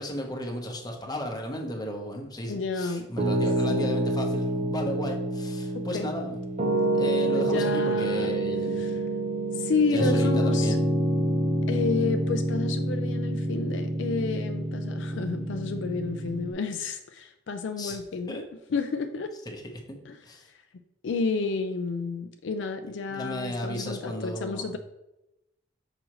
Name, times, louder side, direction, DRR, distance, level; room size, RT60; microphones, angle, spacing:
voice 1, 0.0-6.4 6.9-9.0 9.9-10.8 17.8-18.0 18.3-18.4 19.5-19.6 19.9-20.0 20.2-20.5 23.1-24.7, equal, 20° left, 1 dB, 1.0 m, -34 dB
voice 2, 2.5-3.1 3.7-3.9 5.7-6.1 7.3-8.3 8.8-8.9 9.5-10.8 11.7-18.4 18.7-19.3 20.1-20.2 21.0-24.8, left 4 dB, 70° left, 6 dB, 0.4 m, -31 dB
Piano, 3.2-16.5, right 1 dB, 40° right, 0.9 m, -27 dB
6.2 x 5.0 x 3.0 m, 0.89 s
head